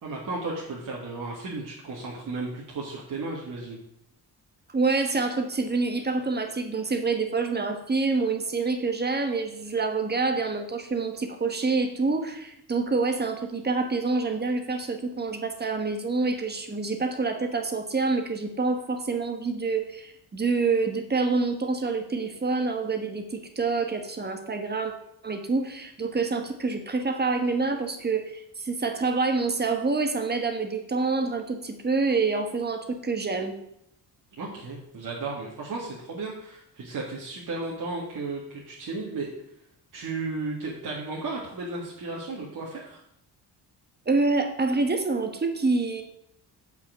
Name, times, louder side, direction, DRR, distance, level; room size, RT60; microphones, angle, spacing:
voice 1, 0.0-3.8 34.3-39.3 39.9-43.0, right 3 dB, 50° right, -4 dB, 2.0 m, -34 dB
voice 2, 4.7-24.9 25.2-33.5 44.1-46.0, right 4 dB, 25° right, 6 dB, 1.3 m, -27 dB
7.8 x 5.8 x 6.3 m, 0.75 s
cardioid pair, 120°, 40 cm